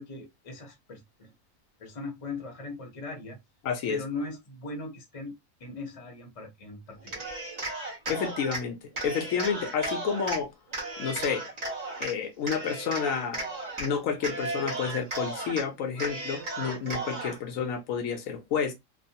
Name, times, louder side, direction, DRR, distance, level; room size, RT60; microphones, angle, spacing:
voice 1, 0.0-1.3 1.8-3.4 3.9-5.3 5.6-7.2, left 3 dB, 35° left, 0.7 m, -39 dB
voice 2, 3.6-4.0 7.9-10.5 11.0-11.5 12.0-13.4 13.8-18.7, left 6 dB, 75° left, 1.0 m, -30 dB
Cheering, 7.0-8.6 9.0-10.4 10.7-12.1 12.5-13.9 14.2-15.6 16.0-17.4, right 2 dB, 30° right, 0.9 m, -35 dB
3.0 x 2.0 x 2.7 m
omnidirectional pair, 1.5 m